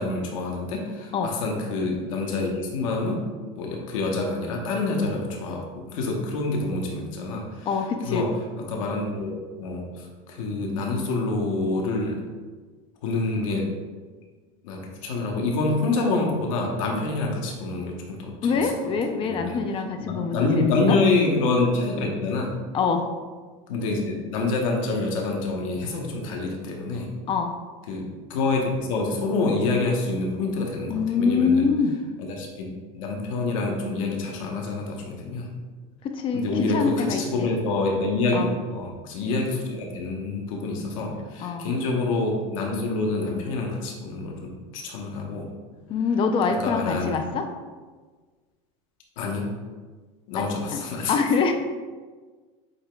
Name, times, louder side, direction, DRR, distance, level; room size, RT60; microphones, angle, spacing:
voice 1, 0.0-3.3 3.6-7.7 8.0-8.3 8.7-12.2 13.0-13.7 14.6-18.7 19.2-19.6 20.0-22.5 23.7-27.1 27.9-31.6 32.3-35.5 36.3-45.5 46.6-47.2 49.2-49.5 50.3-51.2, left 3 dB, 80° left, 1 dB, 1.0 m, -27 dB
voice 2, 7.7-8.3 18.4-21.0 22.7-23.1 27.3-27.6 30.9-32.0 36.0-37.5 38.3-38.5 41.4-41.7 45.9-47.5 50.3-50.4 50.7-50.8 51.1-51.5, left 5 dB, 30° left, 6 dB, 0.4 m, -24 dB
8.0 x 2.9 x 2.2 m, 1.4 s
supercardioid pair, 135°, 17 cm